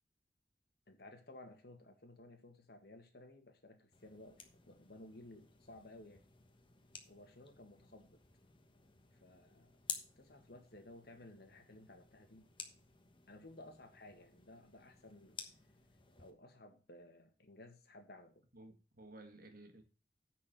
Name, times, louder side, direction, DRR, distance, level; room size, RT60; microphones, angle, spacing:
voice 1, 0.9-6.2 7.1-8.2 9.1-9.8 10.2-12.5 13.3-15.4 16.2-18.4, left 1 dB, 65° left, 1.8 m, -57 dB
sound 1, 3.9-16.3, left 6 dB, 30° left, 1.2 m, -53 dB
voice 2, 18.5-19.8, right 2 dB, 55° right, 1.6 m, -55 dB
9.6 x 4.6 x 6.9 m
head